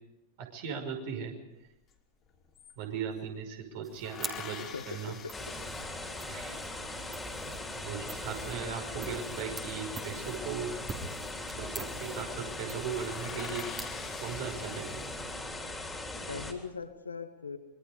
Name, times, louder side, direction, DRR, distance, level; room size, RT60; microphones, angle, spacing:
voice 1, 0.4-1.3 2.8-5.2 6.3-6.6 7.7-10.7 11.6-13.7 14.2-15.1, right 7 dB, 50° right, 4 dB, 5.4 m, -38 dB
sound 1, 1.9-2.0 2.2-3.3 4.0-6.5 9.2-10.2 11.4-11.7 12.0-12.2 12.5-12.6 12.9-15.4 16.0-16.7, left 7 dB, 25° left, 3.2 m, -47 dB
sound 2, 3.8-15.5, right 4 dB, 20° right, 3.2 m, -47 dB
voice 2, 4.6-5.3 16.3-17.6, left 5 dB, 75° left, 8 dB, 2.0 m, -40 dB
sound 3, 5.3-16.5, left 2 dB, 10° left, 3.7 m, -39 dB
25.5 x 23.5 x 5.2 m, 0.90 s
figure-of-eight pair, 90°, 0 cm